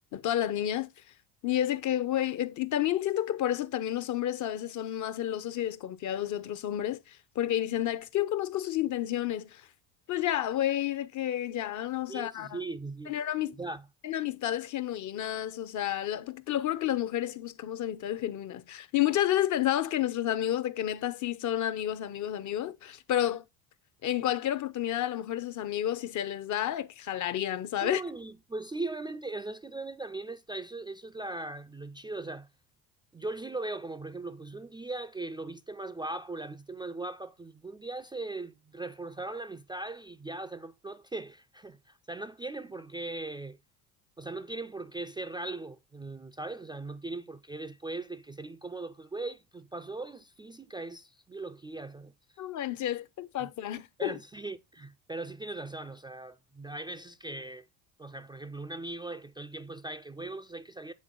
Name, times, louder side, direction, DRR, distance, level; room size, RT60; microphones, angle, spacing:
voice 1, 0.1-0.9 1.4-9.7 10.1-12.6 13.1-13.6 14.0-23.4 24.0-28.0 52.4-54.2, left 12 dB, 45° left, 0.7 m, -30 dB
voice 2, 12.1-13.1 13.6-13.8 27.8-32.5 33.1-43.6 44.2-52.1 53.4-53.5 54.0-57.7 58.0-60.9, right 2 dB, 10° right, 0.4 m, -39 dB
8.5 x 3.5 x 3.8 m
hypercardioid pair, 70°, 43 cm